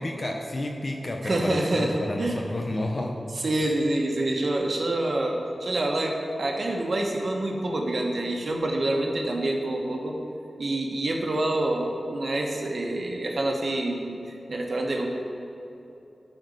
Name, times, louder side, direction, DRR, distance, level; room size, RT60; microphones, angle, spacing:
voice 1, 0.0-3.2, left 1 dB, 45° left, 1 dB, 0.8 m, -30 dB
voice 2, 1.2-2.4 3.4-10.2 10.6-14.2 14.5-15.1, right 1 dB, 65° right, 1 dB, 1.2 m, -27 dB
10.5 x 4.3 x 6.6 m, 2.9 s
cardioid pair, 45°, 0 cm